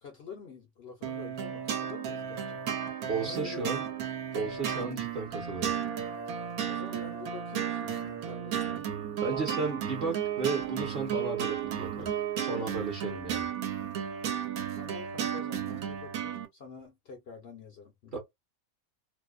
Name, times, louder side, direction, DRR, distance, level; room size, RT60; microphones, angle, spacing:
voice 1, 0.0-3.8 6.6-8.9 9.2-9.7 13.1-13.2 14.5-18.2, left 4 dB, 60° left, 0.7 m, -47 dB
sound 1, 1.0-16.5, right 9 dB, 80° right, 1.1 m, -34 dB
voice 2, 3.1-3.9 4.3-5.7 9.2-12.1 12.4-13.5 18.1-18.2, right 4 dB, 45° right, 0.8 m, -34 dB
2.6 x 2.1 x 2.2 m
omnidirectional pair, 1.5 m